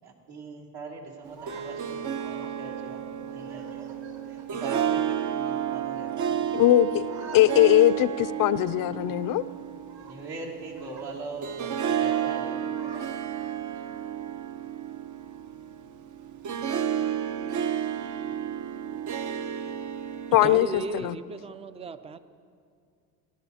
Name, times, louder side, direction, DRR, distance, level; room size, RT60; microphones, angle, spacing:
voice 1, 0.0-6.4 7.1-7.4 7.8-7.9 9.9-13.2, right 3 dB, 65° right, 2.7 m, -42 dB
Harp, 1.2-21.1, right 9 dB, 45° right, 0.7 m, -32 dB
voice 2, 6.5-9.4 20.3-21.2, left 13 dB, 55° left, 0.5 m, -21 dB
voice 3, 20.4-22.2, right 3 dB, 15° right, 0.4 m, -35 dB
17.5 x 12.5 x 2.8 m
supercardioid pair, 80°, 42 cm